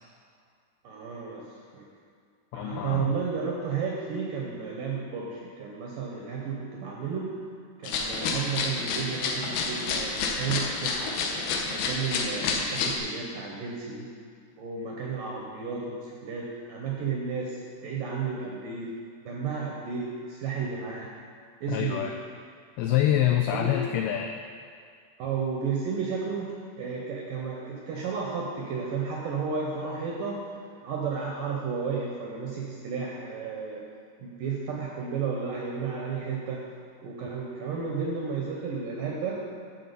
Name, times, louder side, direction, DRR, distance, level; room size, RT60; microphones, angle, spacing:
voice 1, 0.8-1.9 2.5-7.3 7.8-11.1 11.6-14.1 14.6-18.9 19.3-21.1 21.6-22.0 23.5-23.8 25.2-30.4 30.8-33.8 34.2-36.6 37.0-39.4, right 5 dB, 80° right, -2 dB, 2.0 m, -33 dB
voice 2, 2.5-3.2 21.7-22.2 22.8-24.3, left 11 dB, 90° left, 4 dB, 2.2 m, -26 dB
sound 1, 7.8-13.0, left 4 dB, 75° left, 2.4 m, -29 dB
12.0 x 4.3 x 6.8 m, 2.1 s
omnidirectional pair, 5.0 m